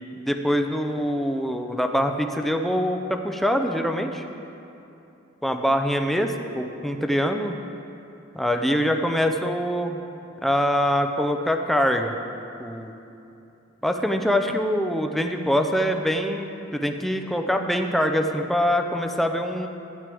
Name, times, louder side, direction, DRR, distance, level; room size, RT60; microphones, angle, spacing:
voice 1, 0.1-4.2 5.4-7.6 8.3-10.0 10.4-12.1 12.6-12.9 13.8-19.7, equal, ahead, 4 dB, 0.5 m, -24 dB
12.5 x 9.9 x 3.5 m, 2.8 s
head